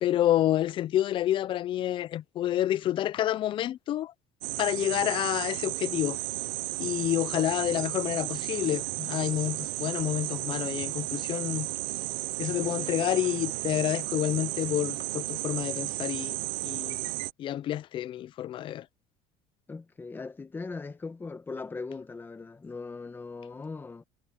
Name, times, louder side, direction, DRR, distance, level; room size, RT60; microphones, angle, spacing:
voice 1, 0.0-4.1 4.6-6.2 6.8-11.7 12.4-17.0 17.4-18.9, left 12 dB, 35° left, 0.5 m, -29 dB
sound 1, 4.4-17.3, right 23 dB, 80° right, 0.7 m, -33 dB
voice 2, 19.7-24.0, left 4 dB, 15° left, 1.6 m, -39 dB
cardioid pair, 145°, 14 cm